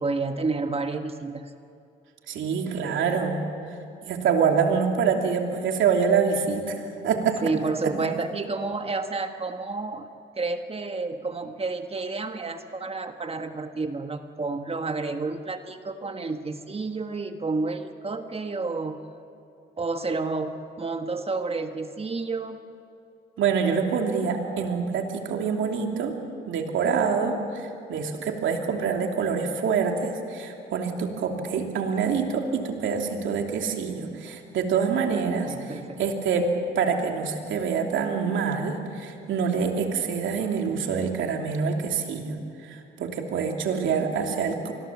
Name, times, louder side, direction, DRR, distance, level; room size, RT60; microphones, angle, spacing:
voice 1, 0.0-1.4 7.4-10.1 10.4-19.0 19.8-22.6 35.4-36.0, right 3 dB, 30° right, 7 dB, 1.4 m, -30 dB
voice 2, 2.3-3.5 4.1-7.4 7.8-7.9 23.4-26.2 26.5-44.7, right 6 dB, 75° right, 3 dB, 3.0 m, -26 dB
26.5 x 20.5 x 7.4 m, 2.6 s
cardioid pair, 90°, 20 cm